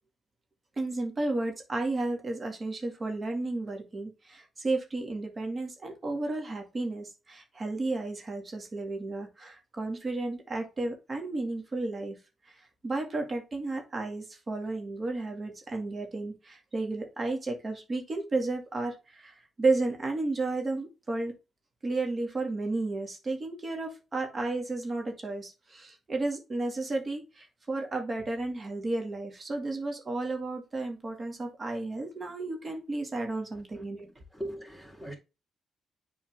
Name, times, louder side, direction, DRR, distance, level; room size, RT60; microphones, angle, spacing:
voice 1, 0.8-12.2 12.5-12.6 12.8-21.3 21.8-34.1, right 2 dB, 40° right, 2.3 m, -33 dB
voice 2, 34.3-35.1, right 1 dB, 10° right, 3.9 m, -39 dB
7.5 x 4.3 x 3.7 m
cardioid pair, 70°, 0 cm